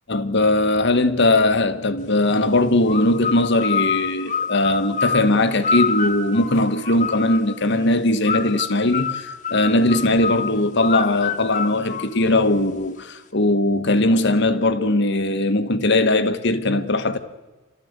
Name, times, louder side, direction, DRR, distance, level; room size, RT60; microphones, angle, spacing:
voice 1, 0.1-17.2, left 2 dB, 55° left, 1.3 m, -19 dB
sound 1, 2.9-7.6 8.2-12.7, left 5 dB, 35° left, 1.5 m, -27 dB
29.0 x 13.5 x 8.1 m
head